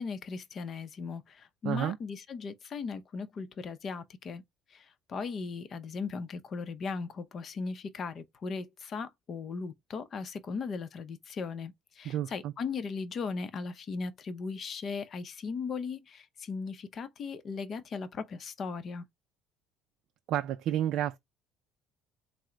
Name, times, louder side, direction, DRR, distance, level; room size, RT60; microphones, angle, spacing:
voice 1, 0.0-4.4 4.7-19.0, left 5 dB, 40° left, 0.6 m, -38 dB
voice 2, 1.6-2.0 12.0-12.5 20.3-21.2, right 11 dB, 60° right, 0.3 m, -30 dB
3.7 x 2.0 x 4.3 m
cardioid pair, 125°, 0 cm